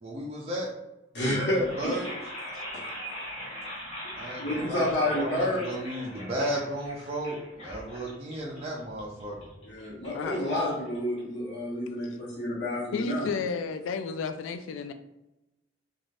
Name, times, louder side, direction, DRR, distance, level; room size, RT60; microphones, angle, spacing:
voice 1, 0.0-0.7 1.5-2.1 4.2-9.4, right 1 dB, 30° right, -3 dB, 0.4 m, -34 dB
voice 2, 1.1-2.0 4.4-5.6 9.6-13.2, left 1 dB, 60° left, -7 dB, 1.0 m, -29 dB
sound 1, 1.5-11.6, equal, 30° left, 0.9 m, -42 dB
voice 3, 12.9-14.9, left 5 dB, 90° left, 10 dB, 0.3 m, -32 dB
2.6 x 2.3 x 3.2 m, 0.95 s
head